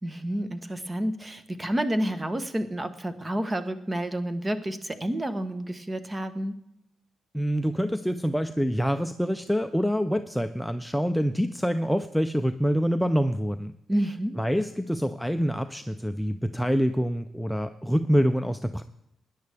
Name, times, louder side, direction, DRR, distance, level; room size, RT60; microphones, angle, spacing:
voice 1, 0.0-6.6 13.9-14.4, right 1 dB, 20° right, 10 dB, 1.2 m, -29 dB
voice 2, 7.3-13.7 14.4-18.8, equal, ahead, 8 dB, 0.5 m, -26 dB
17.0 x 10.5 x 3.5 m, 0.80 s
cardioid pair, 95°, 0 cm